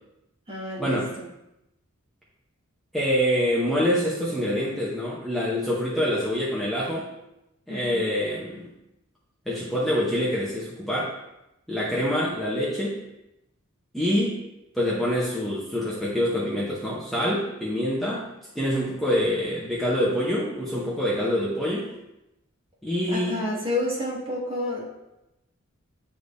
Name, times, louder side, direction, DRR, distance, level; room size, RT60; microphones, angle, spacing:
voice 1, 0.5-1.3 7.7-8.2 23.1-24.9, left 1 dB, 30° right, -6 dB, 1.8 m, -30 dB
voice 2, 2.9-7.1 7.7-8.6 9.5-11.1 11.7-13.0 13.9-14.4 14.7-18.2 18.5-21.9 22.8-23.4, equal, ahead, -8 dB, 0.9 m, -25 dB
10.0 x 3.5 x 2.7 m, 0.91 s
head